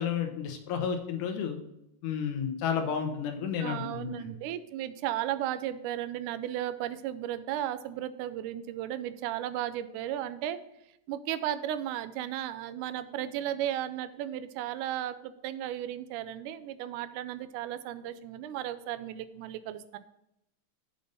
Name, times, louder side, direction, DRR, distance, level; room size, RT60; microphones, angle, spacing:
voice 1, 0.0-1.6 2.0-4.3, left 7 dB, 80° left, 5 dB, 2.5 m, -32 dB
voice 2, 3.6-10.6 11.1-20.0, right 12 dB, 85° right, 12 dB, 2.1 m, -35 dB
6.8 x 5.3 x 6.7 m, 0.84 s
omnidirectional pair, 3.6 m